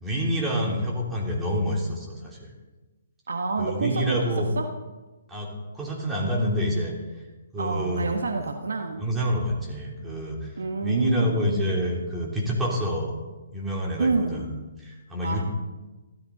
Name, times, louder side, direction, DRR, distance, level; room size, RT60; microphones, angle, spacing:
voice 1, 0.0-2.5 3.6-4.5 5.3-6.9 7.5-8.2 9.0-13.1 13.5-14.5 14.8-15.4, equal, 10° right, -3 dB, 3.2 m, -27 dB
voice 2, 3.3-4.7 7.6-9.0 10.6-11.5 14.0-14.5 15.2-15.4, right 3 dB, 70° right, 5 dB, 1.2 m, -28 dB
15.5 x 13.0 x 4.0 m, 1.2 s
figure-of-eight pair, 130°, 0 cm